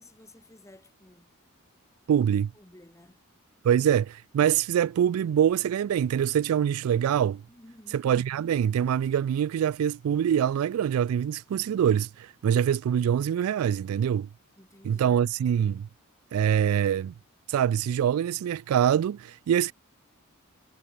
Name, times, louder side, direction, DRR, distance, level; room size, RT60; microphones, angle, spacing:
voice 1, 0.0-1.3 2.5-3.2 7.5-8.1 14.6-15.2, left 1 dB, 15° left, 2.4 m, -54 dB
voice 2, 2.1-2.5 3.6-7.4 7.9-14.3 14.8-15.9 16.3-17.1 17.5-19.7, right 9 dB, 85° right, 0.3 m, -24 dB
head